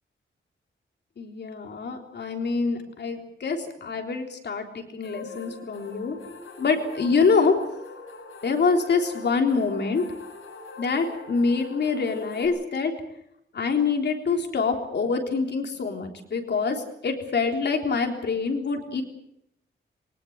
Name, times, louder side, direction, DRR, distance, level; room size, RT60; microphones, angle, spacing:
voice 1, 1.2-6.2 6.6-7.5 8.4-10.0 10.8-12.9 13.5-19.0, left 4 dB, 55° left, 3 dB, 3.7 m, -25 dB
sound 1, 5.0-12.5, left 3 dB, 90° left, 7.1 m, -42 dB
22.5 x 20.0 x 8.0 m, 0.78 s
wide cardioid pair, 175°, 21 cm